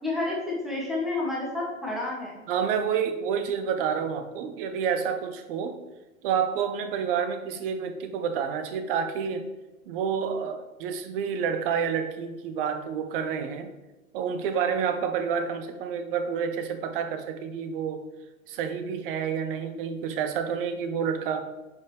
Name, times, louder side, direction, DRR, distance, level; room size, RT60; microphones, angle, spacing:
voice 1, 0.0-2.4, left 2 dB, ahead, -5 dB, 2.2 m, -30 dB
voice 2, 2.5-5.8 6.2-9.4 9.9-13.7 14.1-18.0 18.5-21.4, right 7 dB, 40° right, 8 dB, 1.0 m, -29 dB
9.4 x 5.5 x 3.4 m, 1.1 s
figure-of-eight pair, 95°, 42 cm